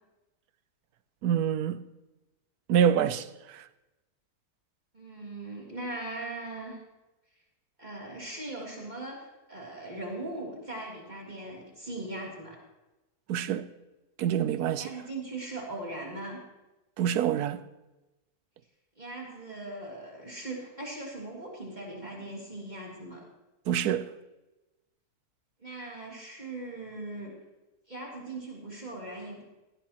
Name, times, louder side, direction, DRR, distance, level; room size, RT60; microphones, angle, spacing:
voice 1, 1.2-1.8 2.7-3.7 13.3-13.7 14.2-14.9 17.0-17.6 23.7-24.1, right 9 dB, 90° right, 1.2 m, -26 dB
voice 2, 4.9-6.8 7.8-12.6 14.8-16.4 19.0-23.2 25.6-27.3 27.9-29.4, right 2 dB, 30° right, 3.3 m, -39 dB
18.5 x 16.0 x 3.0 m
omnidirectional pair, 1.6 m